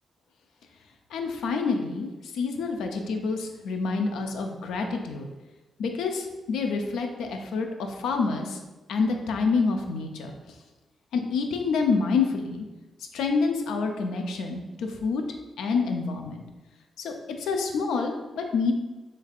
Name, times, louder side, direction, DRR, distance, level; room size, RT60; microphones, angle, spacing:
voice 1, 1.1-5.3 5.8-8.6 8.9-10.3 11.1-12.6 13.1-15.2 15.6-16.4 17.0-18.7, left 4 dB, 90° left, 4 dB, 0.4 m, -27 dB
3.3 x 3.2 x 2.3 m, 1.1 s
cardioid pair, 65°, 0 cm